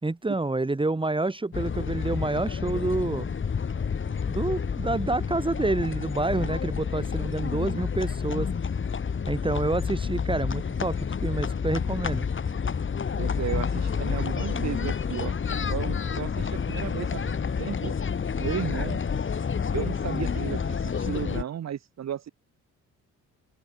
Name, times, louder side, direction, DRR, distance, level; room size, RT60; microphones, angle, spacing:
voice 1, 0.0-3.3 4.3-8.5 9.3-12.3, right 2 dB, 15° right, 4.4 m, -28 dB
sound 1, 1.5-21.4, left 6 dB, 40° left, 4.1 m, -29 dB
voice 2, 13.2-15.4 15.7-17.9 18.4-19.0 19.7-22.3, right 10 dB, 60° right, 3.1 m, -34 dB
open air
cardioid pair, 90°, 30 cm